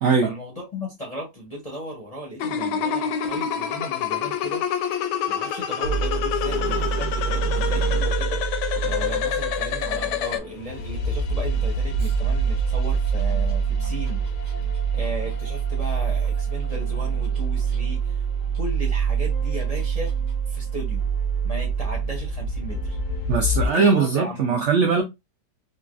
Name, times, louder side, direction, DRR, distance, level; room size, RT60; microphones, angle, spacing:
voice 1, 0.2-4.6 5.3-8.4 8.9-14.2 14.9-18.2 18.6-20.1 20.5-21.0 21.4-23.0 23.6-24.6, equal, 35° left, 0.6 m, -35 dB
sound 1, 2.4-10.4, left 9 dB, 85° left, 1.2 m, -27 dB
sound 2, 5.8-23.7, right 5 dB, 70° left, 0.8 m, -25 dB
Growling, 6.4-8.1 8.8-9.4 12.0-16.8 17.2-18.0 18.5-18.6 19.3-20.3, right 2 dB, 30° right, 1.0 m, -43 dB
voice 2, 23.3-25.0, right 5 dB, 70° right, 0.7 m, -20 dB
3.9 x 2.3 x 2.4 m
omnidirectional pair, 1.8 m